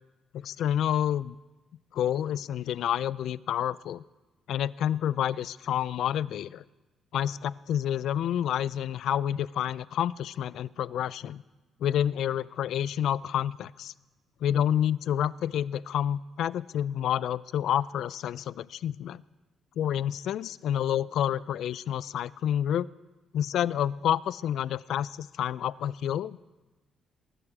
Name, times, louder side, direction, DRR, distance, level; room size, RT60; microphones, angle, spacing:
voice 1, 0.4-1.4 1.9-4.0 4.5-6.6 7.1-11.4 11.8-13.9 14.4-19.2 19.8-22.9 23.3-26.4, left 10 dB, 75° left, 20 dB, 0.4 m, -29 dB
20.0 x 11.0 x 4.9 m, 1.1 s
cardioid pair, 90°, 0 cm